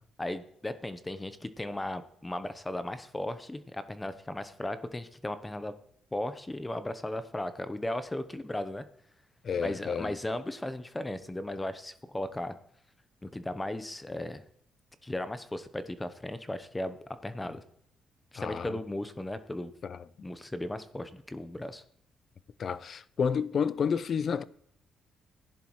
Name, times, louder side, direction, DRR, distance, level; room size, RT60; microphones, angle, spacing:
voice 1, 0.2-5.7 6.1-8.8 9.6-12.5 13.2-14.4 15.0-17.0 17.2-17.6 18.3-19.7 20.2-21.8, left 1 dB, 15° left, 0.9 m, -36 dB
voice 2, 9.4-10.1 18.4-18.8 19.8-20.0 22.6-24.4, left 6 dB, 50° left, 0.5 m, -30 dB
16.0 x 10.5 x 3.2 m
cardioid pair, 90°, 0 cm